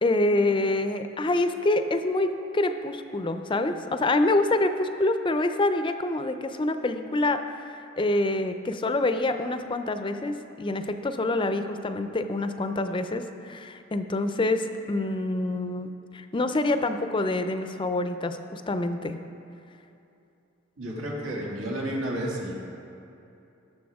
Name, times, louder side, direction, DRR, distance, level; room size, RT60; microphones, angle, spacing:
voice 1, 0.0-7.7 8.0-19.2, left 2 dB, 25° left, 9 dB, 0.5 m, -26 dB
voice 2, 20.8-22.5, right 1 dB, 75° right, -3 dB, 2.2 m, -31 dB
18.0 x 6.7 x 3.6 m, 2.7 s
head